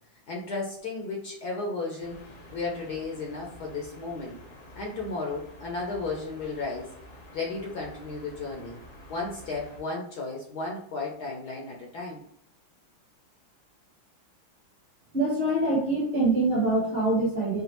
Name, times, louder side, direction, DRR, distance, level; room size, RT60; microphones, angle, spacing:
voice 1, 0.3-2.2 2.5-4.4 4.7-6.9 7.3-8.8 9.1-12.2, left 3 dB, 65° left, 0 dB, 1.1 m, -34 dB
sound 1, 2.0-9.8, equal, 90° left, 2.4 m, -49 dB
voice 2, 15.1-17.6, right 2 dB, 35° right, -4 dB, 1.1 m, -24 dB
5.0 x 2.4 x 2.9 m, 0.71 s
omnidirectional pair, 2.2 m